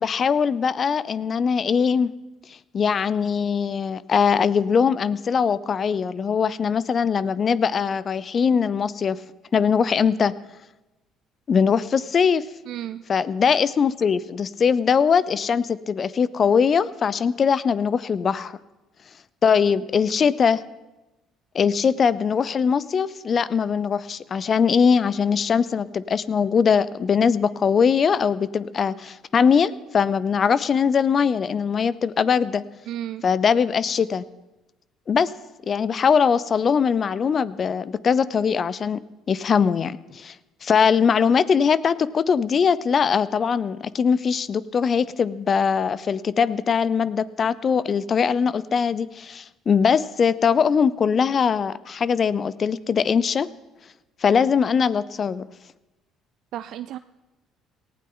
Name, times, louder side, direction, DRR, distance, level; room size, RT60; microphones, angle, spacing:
voice 1, 0.0-2.1 2.7-9.2 9.5-10.3 11.5-12.5 13.1-18.6 19.4-20.6 21.5-32.6 33.2-34.2 35.1-35.3 35.7-39.0 39.3-40.3 40.6-53.5 54.2-55.5, left 6 dB, 45° left, 18 dB, 0.7 m, -21 dB
voice 2, 12.7-13.0 32.9-33.2 56.5-57.0, right 12 dB, 65° right, 11 dB, 0.4 m, -32 dB
18.5 x 15.5 x 3.9 m, 1.0 s
hypercardioid pair, 60°, 0 cm